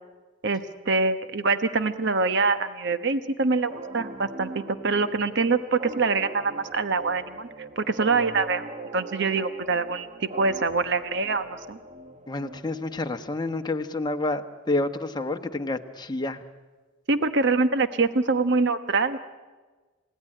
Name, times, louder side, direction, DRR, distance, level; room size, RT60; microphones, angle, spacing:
voice 1, 0.4-7.5 7.8-8.6 8.9-11.8 17.1-19.2, right 3 dB, 60° right, 10 dB, 1.1 m, -25 dB
sound 1, 3.7-13.1, right 3 dB, 35° right, 1.1 m, -41 dB
voice 2, 12.3-16.4, left 2 dB, 20° left, 5 dB, 1.1 m, -29 dB
29.5 x 17.0 x 9.9 m, 1.3 s
head